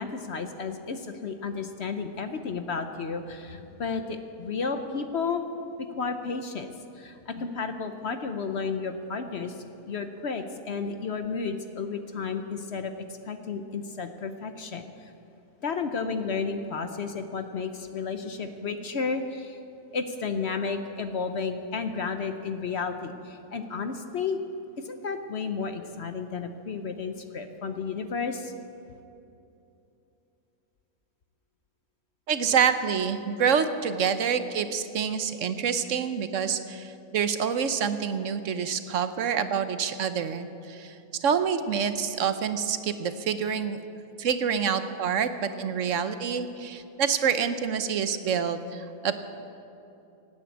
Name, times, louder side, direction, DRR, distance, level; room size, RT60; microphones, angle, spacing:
voice 1, 0.0-5.4 5.8-9.6 9.8-12.9 13.2-15.1 15.6-19.6 19.9-24.4 24.8-28.5, left 5 dB, 50° left, 8 dB, 0.9 m, -32 dB
voice 2, 32.3-43.8 44.2-49.2, right 7 dB, 60° right, 10 dB, 1.1 m, -27 dB
17.5 x 9.4 x 8.4 m, 2.8 s
omnidirectional pair, 1.6 m